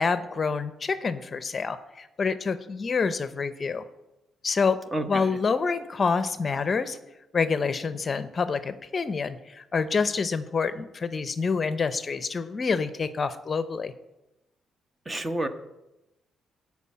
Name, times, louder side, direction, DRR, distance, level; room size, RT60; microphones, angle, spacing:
voice 1, 0.0-3.8 4.4-4.8 5.1-7.0 7.3-13.9, left 5 dB, 35° left, 12 dB, 0.7 m, -27 dB
voice 2, 4.9-5.3 15.1-15.5, right 1 dB, 20° right, 9 dB, 1.0 m, -29 dB
12.5 x 4.7 x 8.5 m, 0.96 s
cardioid pair, 90°, 0 cm